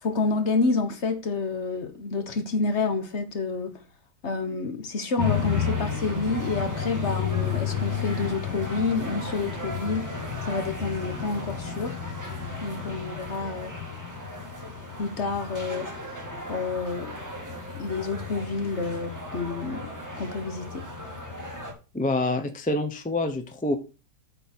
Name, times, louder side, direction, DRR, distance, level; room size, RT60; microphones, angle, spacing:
voice 1, 0.0-3.8 4.2-10.1 10.4-12.0 12.6-13.8 15.0-16.0 16.5-17.2 17.8-19.9 20.2-20.8, left 3 dB, 45° left, 1.3 m, -29 dB
sound 1, 5.2-21.7, left 5 dB, 10° right, 1.9 m, -32 dB
voice 2, 21.9-23.8, left 2 dB, 10° left, 0.4 m, -26 dB
8.9 x 4.2 x 6.0 m
omnidirectional pair, 1.8 m